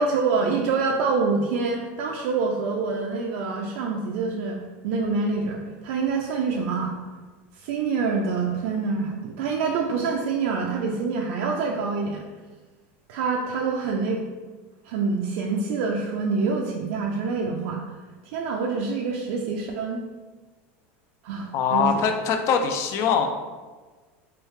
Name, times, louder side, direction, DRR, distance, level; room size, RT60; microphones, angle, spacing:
voice 1, 0.0-4.6 4.8-6.9 7.5-12.2 13.1-14.3 14.8-17.8 18.2-20.0 21.2-21.9, right 4 dB, 75° right, 0 dB, 0.4 m, -26 dB
voice 2, 21.5-23.3, left 6 dB, 45° left, 5 dB, 0.4 m, -22 dB
3.1 x 2.3 x 3.2 m, 1.3 s
supercardioid pair, 125°, 7 cm